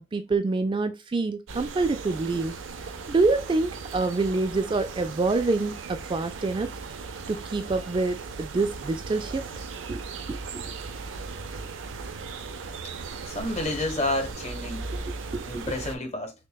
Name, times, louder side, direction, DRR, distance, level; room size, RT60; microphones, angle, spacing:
voice 1, 0.0-2.6 3.1-6.7 7.3-9.4 9.9-10.0 10.3-10.6 14.9-15.0 15.3-15.4, right 3 dB, 25° right, 0.3 m, -26 dB
sound 1, 1.5-16.0, right 4 dB, 85° right, 0.6 m, -37 dB
voice 2, 13.3-14.8 15.4-16.3, left 2 dB, 35° left, 1.1 m, -30 dB
6.4 x 2.2 x 2.2 m
head